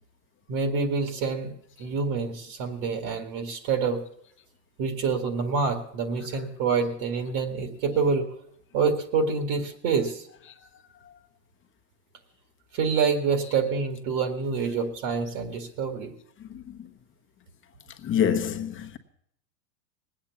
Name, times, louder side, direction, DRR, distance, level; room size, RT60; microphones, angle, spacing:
voice 1, 0.5-1.5 1.8-4.0 4.8-8.3 8.7-10.3 12.7-16.1, right 5 dB, 55° right, 2.0 m, -27 dB
voice 2, 18.0-19.0, left 8 dB, 25° left, 1.1 m, -25 dB
19.5 x 8.9 x 7.0 m
supercardioid pair, 130°, 50 cm